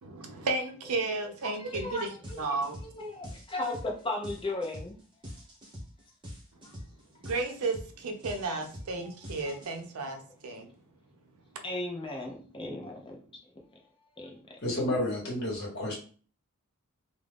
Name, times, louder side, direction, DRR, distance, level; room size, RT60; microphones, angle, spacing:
voice 1, 0.0-2.8 7.2-10.7, right 3 dB, 80° right, 0.5 m, -33 dB
voice 2, 1.6-5.0 9.4-9.6 11.6-13.2 14.2-14.6, left 2 dB, 20° left, 0.4 m, -36 dB
sound 1, 1.7-1.9 2.2-10.0, equal, 20° right, 0.6 m, -44 dB
voice 3, 14.6-16.0, left 1 dB, 50° left, 1.0 m, -30 dB
2.4 x 2.0 x 3.3 m
head